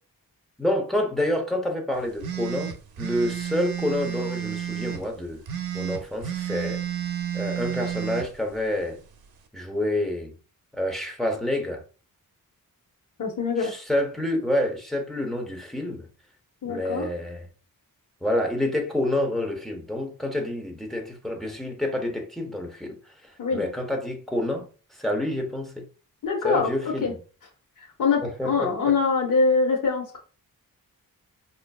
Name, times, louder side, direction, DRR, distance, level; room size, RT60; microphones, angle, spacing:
voice 1, 0.6-5.4 5.7-6.8 7.3-9.0 9.5-10.3 10.8-11.8 13.6-16.1 16.6-17.5 18.2-23.0 23.5-25.8 26.4-27.2 28.2-28.9, left 1 dB, ahead, 0.7 m, -28 dB
sound 1, 2.2-5.0 5.5-8.3, right 10 dB, 90° right, 0.6 m, -31 dB
voice 2, 13.2-13.7 16.6-17.1 23.4-23.6 26.2-26.7 27.0-27.1 28.0-30.2, left 4 dB, 60° left, 0.7 m, -23 dB
4.4 x 2.5 x 2.3 m
wide cardioid pair, 145°, 35 cm